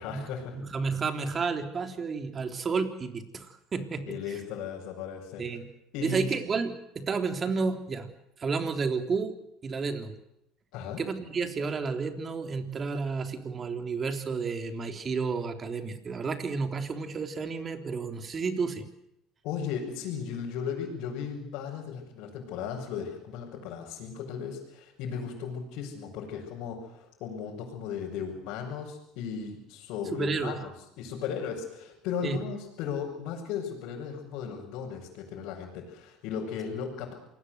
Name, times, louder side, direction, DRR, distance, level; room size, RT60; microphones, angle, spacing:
voice 1, 0.0-0.5 4.1-5.4 5.9-6.3 10.7-11.0 19.4-37.1, left 7 dB, 70° left, -5 dB, 6.5 m, -36 dB
voice 2, 0.6-4.1 5.4-5.7 6.0-8.1 8.4-9.3 9.6-10.2 11.0-18.8 30.1-30.6 32.2-32.4, right 4 dB, 35° right, 7 dB, 3.5 m, -31 dB
27.0 x 19.5 x 8.1 m, 0.82 s
supercardioid pair, 95°, 0 cm